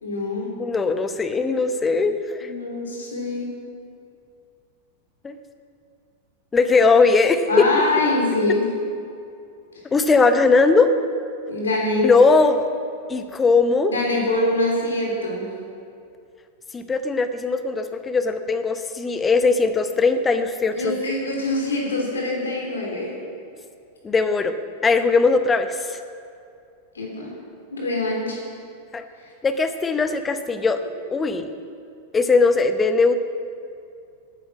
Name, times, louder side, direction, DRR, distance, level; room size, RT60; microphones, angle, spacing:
voice 1, 0.0-0.5 2.4-3.5 7.5-8.6 11.5-12.0 13.9-15.4 20.7-23.1 27.0-27.3 27.7-28.4 29.2-29.3, left 2 dB, 70° left, -1 dB, 3.3 m, -24 dB
voice 2, 0.6-2.5 5.2-5.4 6.5-7.4 9.9-10.9 12.0-12.7 13.1-13.9 16.7-20.9 24.0-24.5 24.8-26.0 28.9-29.0 29.4-30.8 31.1-31.5 32.1-33.1, left 4 dB, 15° left, 9 dB, 0.9 m, -19 dB
13.5 x 9.3 x 6.2 m, 2.5 s
figure-of-eight pair, 90°, 0 cm